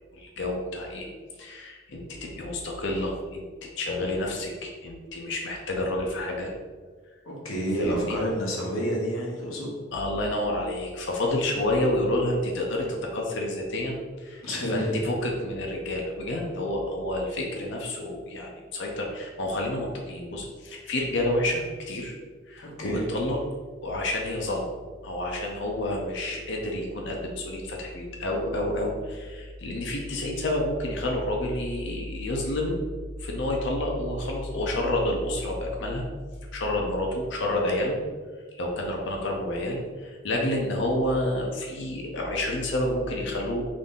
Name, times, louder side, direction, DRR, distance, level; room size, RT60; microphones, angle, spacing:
voice 1, 0.1-1.1 1.4-3.5 3.8-6.5 7.8-8.2 9.9-22.1 22.5-23.4 23.8-24.7 25.0-32.9 33.2-36.1 36.5-38.0 38.6-43.7, left 1 dB, 60° left, 0 dB, 0.6 m, -29 dB
voice 2, 7.3-9.7 14.4-15.0 22.6-23.0, equal, 85° left, -2 dB, 1.1 m, -29 dB
3.8 x 2.7 x 3.6 m, 1.5 s
head